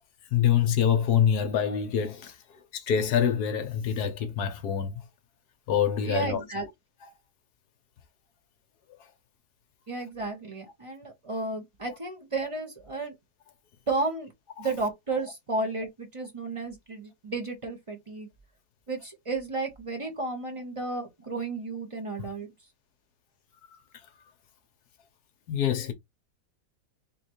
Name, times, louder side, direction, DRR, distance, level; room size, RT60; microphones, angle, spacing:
voice 1, 0.3-5.0 5.7-6.4 14.6-14.7 23.7-23.8 25.5-25.9, left 8 dB, 65° left, 1.2 m, -26 dB
voice 2, 6.0-6.6 9.9-13.1 13.9-14.3 14.6-18.3 18.9-22.5, right 3 dB, 35° right, 0.5 m, -33 dB
3.9 x 3.2 x 3.0 m
omnidirectional pair, 2.1 m